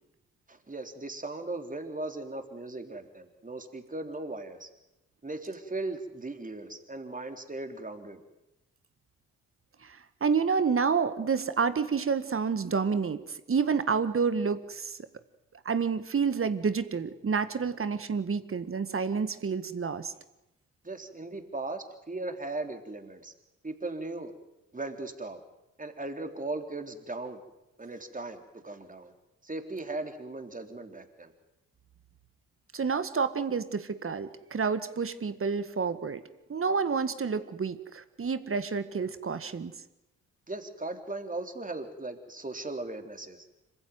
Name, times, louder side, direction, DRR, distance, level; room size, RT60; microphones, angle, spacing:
voice 1, 0.5-4.7 5.2-8.2 20.8-23.3 23.6-24.3 24.7-25.4 25.8-27.4 27.8-29.1 29.4-31.3 40.5-43.5, right 2 dB, 25° right, 6 dB, 3.7 m, -38 dB
voice 2, 9.8-15.0 15.7-20.1 32.7-36.2 36.5-39.7, right 5 dB, 40° right, 12 dB, 1.8 m, -29 dB
26.5 x 15.5 x 9.6 m, 0.93 s
hypercardioid pair, 45°, 35 cm